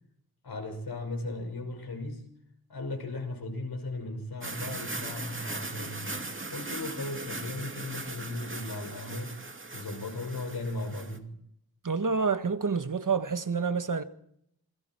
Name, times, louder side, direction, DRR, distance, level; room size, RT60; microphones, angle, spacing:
voice 1, 0.4-2.3 2.7-6.2 6.5-9.3 9.7-11.3, left 2 dB, 90° left, 5.9 m, -37 dB
sound 1, 4.4-11.2, right 2 dB, 35° right, 2.6 m, -39 dB
voice 2, 11.8-14.0, right 5 dB, 55° right, 1.6 m, -28 dB
27.5 x 23.0 x 4.6 m
wide cardioid pair, 80°, 37 cm